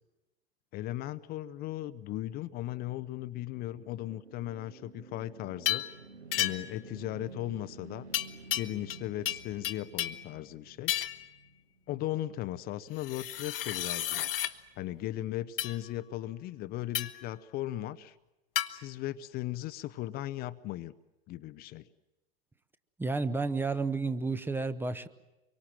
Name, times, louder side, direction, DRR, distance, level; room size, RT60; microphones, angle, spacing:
voice 1, 0.7-5.8 6.4-8.1 8.5-10.9 11.9-14.3 14.8-18.1 18.7-20.9 21.3-21.9, left 14 dB, 30° left, 13 dB, 0.8 m, -37 dB
sound 1, 3.1-12.1, right 3 dB, 80° right, 2.9 m, -51 dB
sound 2, 5.7-5.9 6.3-6.8 8.1-9.0 9.3-10.3 10.9-11.3 13.0-14.5 15.6-15.8 16.9-17.3 18.6-18.7, left 12 dB, 55° left, 1.4 m, -32 dB
voice 2, 23.0-25.1, right 3 dB, 5° right, 12 dB, 0.9 m, -31 dB
25.5 x 24.0 x 7.6 m, 1.0 s
figure-of-eight pair, 95°, 32 cm